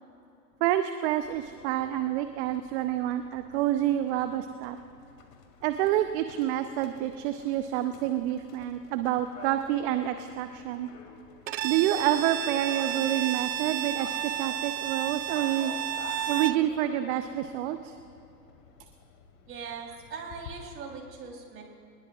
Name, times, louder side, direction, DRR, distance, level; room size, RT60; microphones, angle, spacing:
voice 1, 0.6-4.8 5.6-10.9 11.6-15.7 16.3-18.0, right 12 dB, 45° right, 9 dB, 0.8 m, -28 dB
Livestock farm animals working animals, 1.2-20.5, left 6 dB, 50° left, 2.4 m, -49 dB
Bowed string instrument, 11.5-16.7, right 11 dB, 85° right, 0.8 m, -32 dB
voice 2, 19.5-21.6, right 5 dB, 25° right, 0 dB, 3.7 m, -40 dB
27.0 x 20.0 x 2.5 m, 2.7 s
hypercardioid pair, 120°, 49 cm